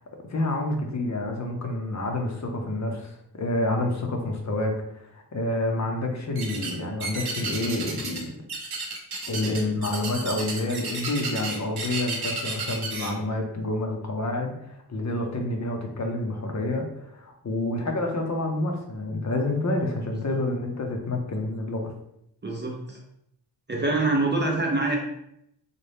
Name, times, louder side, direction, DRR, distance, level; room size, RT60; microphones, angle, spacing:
voice 1, 0.3-8.4 9.3-21.9, left 2 dB, 40° left, 3 dB, 0.6 m, -28 dB
sound 1, 6.3-6.7 7.0-8.2 8.5-13.1, right 3 dB, 60° right, 0.9 m, -32 dB
voice 2, 22.4-23.0 23.7-25.0, right 2 dB, 25° right, 0 dB, 0.5 m, -25 dB
4.0 x 2.2 x 3.3 m, 0.77 s
wide cardioid pair, 125°, 43 cm